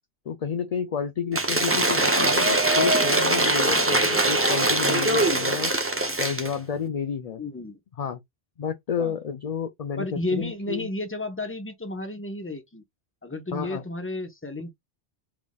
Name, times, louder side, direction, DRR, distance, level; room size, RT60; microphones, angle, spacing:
voice 1, 0.3-5.7 6.2-7.4 8.0-8.2 8.6-10.9 13.5-13.8, left 7 dB, 50° left, 0.4 m, -30 dB
Cheering / Applause / Crowd, 1.3-6.5, right 2 dB, 15° right, 0.5 m, -22 dB
voice 2, 7.4-7.8 9.0-9.1 10.0-12.8 13.2-14.7, left 2 dB, 15° left, 0.8 m, -32 dB
4.9 x 3.6 x 2.3 m
omnidirectional pair, 1.1 m